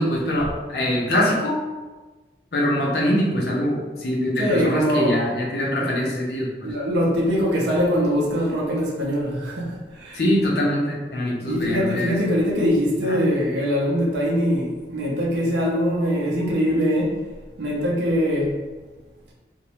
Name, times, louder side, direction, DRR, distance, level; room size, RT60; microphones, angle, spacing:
voice 1, 0.0-1.6 2.5-6.7 10.1-12.1 13.1-13.2, left 1 dB, 65° left, -3 dB, 0.6 m, -23 dB
voice 2, 4.4-5.2 5.8-5.9 6.6-10.2 11.5-17.2 17.6-18.6, equal, 80° right, -4 dB, 0.6 m, -22 dB
2.5 x 2.0 x 2.9 m, 1.3 s
head